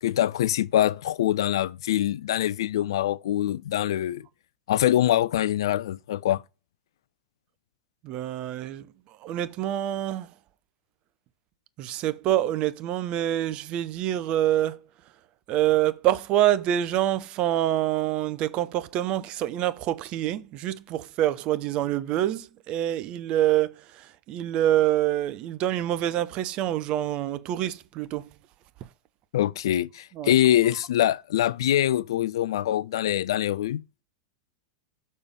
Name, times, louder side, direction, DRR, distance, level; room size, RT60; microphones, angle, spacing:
voice 1, 0.0-4.3 4.7-6.4 29.3-33.8, left 12 dB, 65° left, 0.3 m, -24 dB
voice 2, 8.0-8.9 9.2-10.3 11.8-14.8 15.5-28.3 30.2-30.3, right 12 dB, 40° right, 0.6 m, -26 dB
6.8 x 4.3 x 5.2 m
hypercardioid pair, 100°, 3 cm